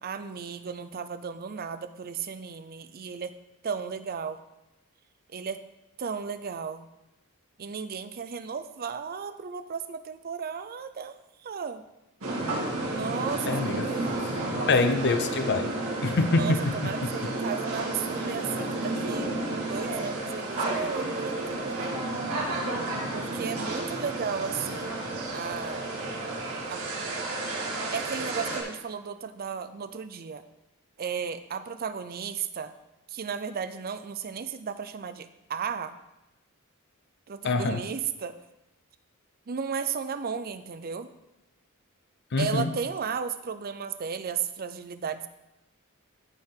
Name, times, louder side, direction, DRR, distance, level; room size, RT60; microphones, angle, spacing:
voice 1, 0.0-3.3 3.6-4.4 5.3-5.6 6.0-6.9 7.6-11.8 12.9-13.9 16.3-19.3 19.6-22.0 23.1-25.0 25.3-25.9 26.7-26.9 27.9-30.4 31.0-32.7 33.1-36.0 37.3-38.4 39.5-41.1 42.4-45.3, right 6 dB, 45° right, 11 dB, 0.5 m, -34 dB
sound 1, 12.2-28.6, right 2 dB, 75° right, 2.1 m, -31 dB
voice 2, 13.5-13.8 14.7-15.7 16.0-17.1 37.4-37.8 42.3-42.7, left 3 dB, 50° left, 8 dB, 0.6 m, -25 dB
13.5 x 4.5 x 3.7 m, 0.94 s
head